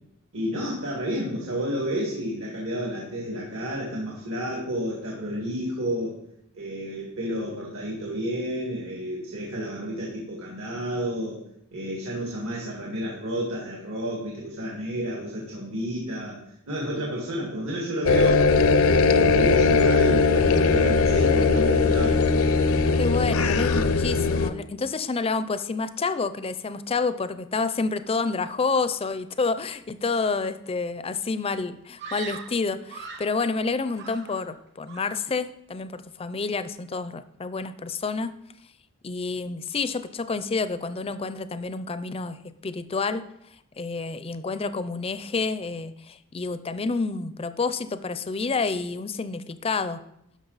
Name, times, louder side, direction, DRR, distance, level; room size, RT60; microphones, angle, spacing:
voice 1, 0.3-6.2 6.5-11.4 11.7-16.4 16.7-18.5 18.8-22.2, equal, 75° right, -3 dB, 2.0 m, -31 dB
sound 1, 18.0-24.5, left 4 dB, 70° left, 0.6 m, -20 dB
voice 2, 23.0-38.3 39.0-43.2 43.8-50.0, left 4 dB, 25° left, 13 dB, 0.5 m, -29 dB
Screaming, 32.0-33.4 33.9-34.6 34.9-35.3, right 5 dB, 55° right, 1.1 m, -40 dB
11.5 x 5.9 x 4.0 m, 0.77 s
head